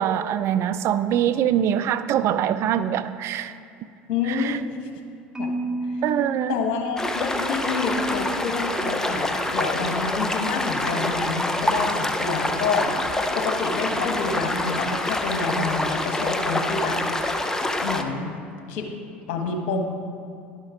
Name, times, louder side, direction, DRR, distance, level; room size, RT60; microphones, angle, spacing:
voice 1, 0.0-3.6 4.3-4.6 6.0-6.5, right 10 dB, 50° right, 12 dB, 0.4 m, -23 dB
voice 2, 4.1-4.9 5.4-5.5 5.8-6.0 6.5-13.0 13.3-17.0 17.8-18.4 18.7-18.9 19.3-19.8, left 4 dB, 65° left, 2 dB, 1.3 m, -28 dB
Marimba xylophone, 5.3-7.5, right 1 dB, 15° right, 1.2 m, -31 dB
sound 1, 7.0-18.0, left 1 dB, 10° left, 0.6 m, -26 dB
10.5 x 5.2 x 4.9 m, 2.4 s
hypercardioid pair, 75°, 6 cm